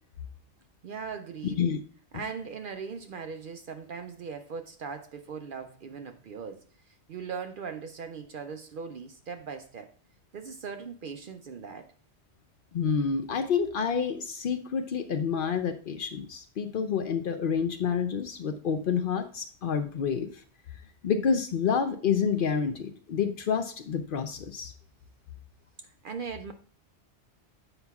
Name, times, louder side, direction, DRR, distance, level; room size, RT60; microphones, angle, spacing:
voice 1, 0.8-1.7 2.1-9.9 10.3-11.9 25.8-26.5, right 5 dB, 60° right, 7 dB, 0.6 m, -39 dB
voice 2, 1.4-1.8 12.7-20.3 21.0-24.7, left 6 dB, 60° left, 7 dB, 0.7 m, -28 dB
7.8 x 5.5 x 2.3 m, 0.42 s
omnidirectional pair, 1.2 m